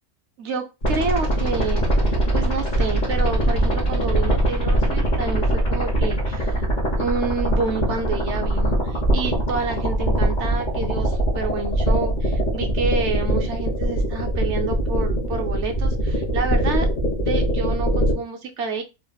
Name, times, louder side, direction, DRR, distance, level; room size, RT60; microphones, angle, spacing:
voice 1, 0.4-6.6 7.0-16.9 17.2-18.8, right 4 dB, 65° right, 5 dB, 0.7 m, -29 dB
sound 1, 0.8-18.1, right 1 dB, 35° left, 1.1 m, -22 dB
3.2 x 3.1 x 2.3 m, 0.26 s
omnidirectional pair, 1.6 m